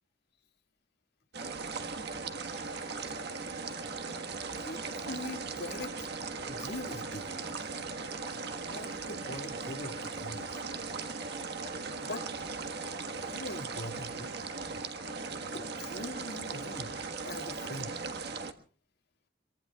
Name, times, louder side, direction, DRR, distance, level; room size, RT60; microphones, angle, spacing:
sound 1, 1.3-18.5, right 4 dB, 65° right, 1.5 m, -38 dB
voice 1, 4.6-6.1 6.5-7.5 8.7-10.6 12.0-12.2 13.2-14.3 15.5-16.9 17.2-17.9, left 2 dB, 65° left, 3 dB, 2.0 m, -42 dB
25.5 x 23.5 x 2.3 m, 0.39 s
head